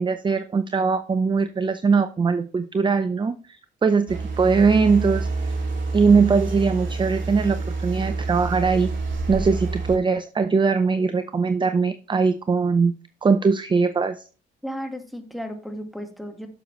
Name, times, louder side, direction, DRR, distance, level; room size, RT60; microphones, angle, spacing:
voice 1, 0.0-5.3 5.9-8.9 9.3-12.9 13.2-14.2, right 5 dB, 25° right, 11 dB, 0.5 m, -21 dB
sound 1, 4.1-10.0, right 3 dB, 70° right, 2.7 m, -28 dB
voice 2, 14.6-16.5, equal, ahead, 6 dB, 1.6 m, -34 dB
9.0 x 6.8 x 3.1 m, 0.36 s
cardioid pair, 90°, 20 cm